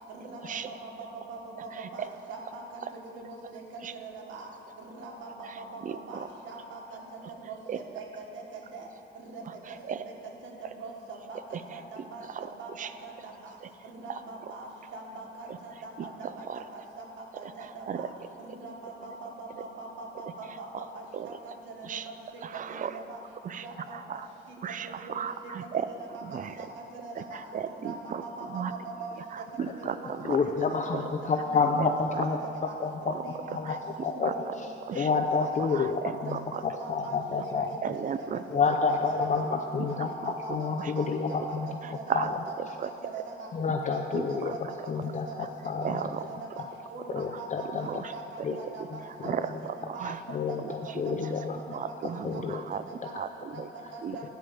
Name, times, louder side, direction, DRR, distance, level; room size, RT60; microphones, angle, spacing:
voice 1, 0.1-3.6 3.9-4.5 4.8-7.0 7.3-8.0 8.3-8.9 9.3-9.8 10.4-10.5 10.8-10.9 11.3-11.4 11.7-12.7 13.0-13.3 13.8-18.1 18.4-22.1 22.5-23.2 23.6-24.2 24.8-25.1 25.6-26.7 26.9-27.4 27.6-29.2 29.7-30.1 30.7-31.9 32.4-32.7 33.0-35.0 35.3-35.8 36.2-39.4 39.9-41.6 41.9-42.1 42.4-43.5 43.9-44.8 45.1-45.5 45.8-45.9 46.3-46.6 46.9-49.5 49.8-50.0 50.5-50.8 51.0-51.3 51.7-52.4 52.9-53.1 53.5-54.2, right 3 dB, 75° right, -1 dB, 1.7 m, -42 dB
voice 2, 5.8-6.3 7.7-7.8 9.9-10.0 12.3-12.5 12.8-12.9 14.1-14.2 16.5-16.6 17.9-18.1 21.1-21.3 21.8-22.1 22.4-23.0 23.4-23.6 23.9-24.3 24.6-25.9 26.2-26.5 27.2-27.3 27.5-28.2 28.5-28.7 29.3-30.4 30.9-31.0 33.7-33.8 34.2-34.3 34.9-35.1 35.7-35.8 36.3-36.6 37.8-38.4 40.8-40.9 42.1-42.3 42.8-42.9 44.1-44.5 45.4-45.5 45.8-46.2 47.8-48.0 49.2-49.5 49.9-50.2 51.7-52.8 53.2-53.7 54.0-54.2, right 8 dB, 40° right, 12 dB, 0.5 m, -34 dB
voice 3, 30.3-32.4 32.8-33.1 33.5-34.3 34.6-34.7 35.0-36.4 36.6-37.7 38.5-41.7 42.1-42.3 43.5-44.6 44.9-45.3 45.6-46.4 47.1-47.9 48.4-48.5 49.2-49.6 50.3-51.6 52.2-52.6, left 5 dB, 40° left, 4 dB, 0.5 m, -29 dB
9.8 x 4.8 x 7.7 m, 2.6 s
cardioid pair, 90°, 20 cm